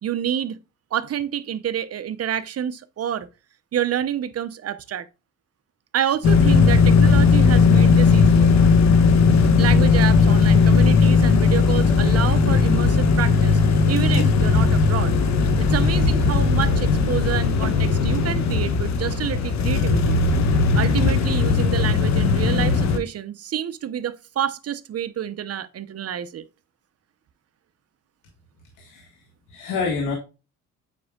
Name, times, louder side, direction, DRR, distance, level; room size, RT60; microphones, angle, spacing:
voice 1, 0.0-0.6 0.9-3.3 3.7-5.1 5.9-8.5 9.6-13.6 13.9-15.2 15.6-20.2 20.7-26.4, right 10 dB, 55° right, 0.8 m, -28 dB
sound 1, 6.2-23.0, left 4 dB, 65° left, 1.3 m, -17 dB
voice 2, 28.8-29.1 29.5-30.2, left 4 dB, 85° left, 1.7 m, -27 dB
8.5 x 5.3 x 2.3 m
cardioid pair, 90°, 30 cm